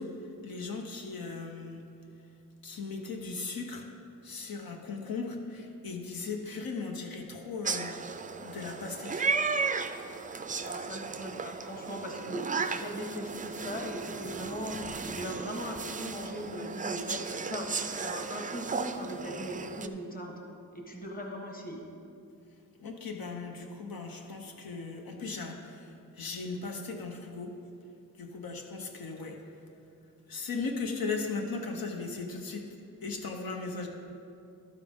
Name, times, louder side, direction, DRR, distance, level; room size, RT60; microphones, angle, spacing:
voice 1, 0.0-1.8 2.6-3.9 4.2-8.0 8.4-9.3 22.8-27.5 28.2-29.5 30.3-32.8 33.0-33.9, left 4 dB, 80° left, 2 dB, 0.9 m, -37 dB
sound 1, 7.6-19.9, right 4 dB, 25° right, 0.3 m, -35 dB
voice 2, 10.6-20.4 20.7-21.8, equal, 25° left, 1 dB, 1.3 m, -39 dB
12.0 x 9.1 x 3.5 m, 2.6 s
wide cardioid pair, 120°, 35 cm